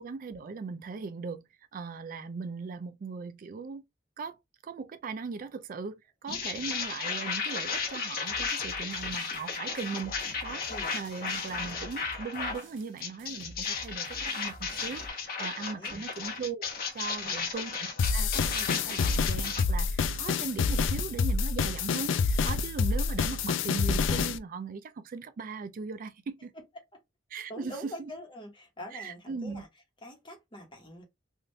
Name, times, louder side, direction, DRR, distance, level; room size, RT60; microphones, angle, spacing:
voice 1, 0.0-3.8 4.2-16.7 16.9-26.5 27.3-28.1 28.9-29.6, right 5 dB, 45° right, 0.4 m, -39 dB
sound 1, 6.3-12.6 13.0-19.6, left 5 dB, 50° left, 1.0 m, -34 dB
sound 2, 8.3-15.1, equal, 80° right, 1.0 m, -49 dB
sound 3, 18.0-24.4, left 5 dB, 90° left, 0.4 m, -27 dB
voice 2, 27.5-29.7 30.0-31.0, equal, 25° left, 1.1 m, -44 dB
3.5 x 2.5 x 2.6 m
head